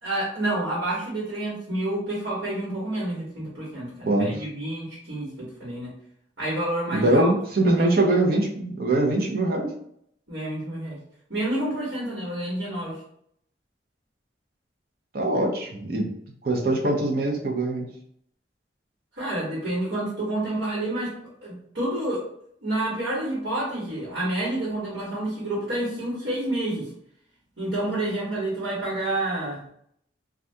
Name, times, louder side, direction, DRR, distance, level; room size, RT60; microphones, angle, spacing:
voice 1, 0.0-5.9 6.4-7.3 7.6-7.9 10.3-11.0 11.3-13.0 19.1-21.1 21.4-22.2 22.6-26.9 27.6-29.6, right 1 dB, 75° right, -7 dB, 1.3 m, -29 dB
voice 2, 6.9-9.7 15.1-16.0 16.4-17.9, right 2 dB, 50° right, 0 dB, 0.6 m, -22 dB
2.7 x 2.4 x 3.3 m, 0.68 s
head